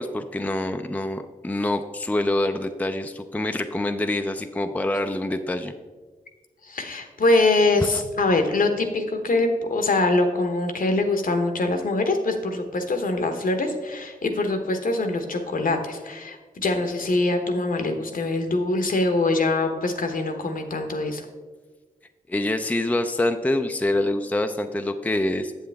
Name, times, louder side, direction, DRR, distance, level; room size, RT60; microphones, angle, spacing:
voice 1, 0.0-5.7 7.8-8.0 22.3-25.5, left 1 dB, 10° left, 7 dB, 0.5 m, -26 dB
voice 2, 6.6-21.2, left 2 dB, 65° left, 5 dB, 1.0 m, -23 dB
7.6 x 7.4 x 3.4 m, 1.4 s
cardioid pair, 50°, 15 cm